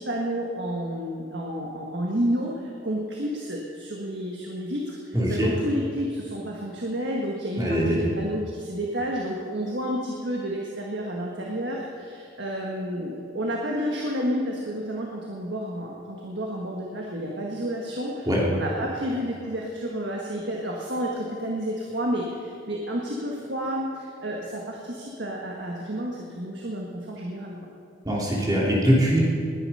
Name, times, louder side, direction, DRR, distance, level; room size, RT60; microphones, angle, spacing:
voice 1, 0.0-27.6, equal, 60° right, -2 dB, 1.6 m, -30 dB
voice 2, 5.1-5.5 7.6-8.0 18.3-18.4 28.0-29.2, equal, 20° right, -4 dB, 3.0 m, -22 dB
20.5 x 10.0 x 5.6 m, 2.4 s
head